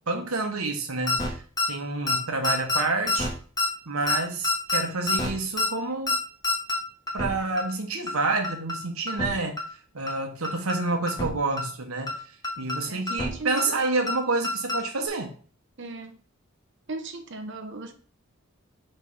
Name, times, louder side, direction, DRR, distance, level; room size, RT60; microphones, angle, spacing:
voice 1, 0.1-1.3 1.7-3.3 3.9-6.2 7.1-9.5 9.9-12.2 12.6-15.3, right 3 dB, 85° right, 4 dB, 1.2 m, -28 dB
sound 1, 1.1-1.3 1.6-1.7 2.1-2.2 2.4-2.8 3.1-3.3 3.6-3.7 4.1-4.2 4.4-4.8 5.1-5.3 5.6-5.7 6.1-6.2 6.4-6.8 7.1-7.3 7.6-7.7 8.1-8.2 8.4-8.8 9.1-9.3 9.6-9.7 10.1-10.2 10.4-10.8 11.1-11.3 11.6-11.7 12.1-12.2 12.4-12.8 13.1-13.3 13.6-13.7 14.1-14.2 14.4-14.8 15.1-15.2, left 2 dB, 20° left, 1.2 m, -26 dB
voice 2, 15.8-16.1 16.9-17.9, right 3 dB, 55° right, 6 dB, 0.9 m, -36 dB
5.4 x 3.3 x 5.5 m, 0.43 s
head